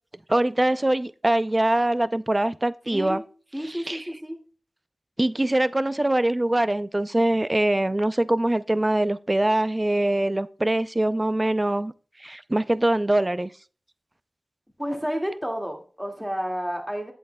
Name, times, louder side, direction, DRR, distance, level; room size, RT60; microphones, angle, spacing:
voice 1, 0.3-3.2 3.7-4.0 5.2-11.9 12.2-13.5, right 1 dB, 25° right, 0.4 m, -23 dB
voice 2, 2.9-3.3 3.5-4.4 14.8-17.1, equal, 5° right, 2.0 m, -30 dB
8.7 x 8.0 x 2.2 m
cardioid pair, 45°, 0 cm